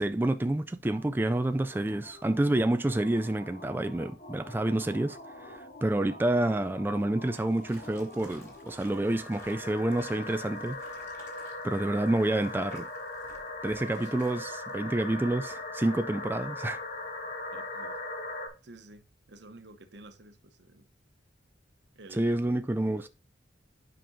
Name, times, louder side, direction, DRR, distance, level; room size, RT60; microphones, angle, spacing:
voice 1, 0.0-10.8 11.6-12.9 13.6-16.8 22.1-23.1, right 1 dB, 10° right, 0.3 m, -28 dB
sound 1, 0.8-18.5, left 2 dB, 45° left, 1.7 m, -41 dB
sound 2, 7.3-14.7, left 1 dB, 15° left, 2.5 m, -56 dB
voice 2, 17.5-18.0 18.6-20.9 21.9-22.6 22.9-23.1, right 2 dB, 65° right, 1.0 m, -51 dB
10.0 x 5.2 x 2.7 m
head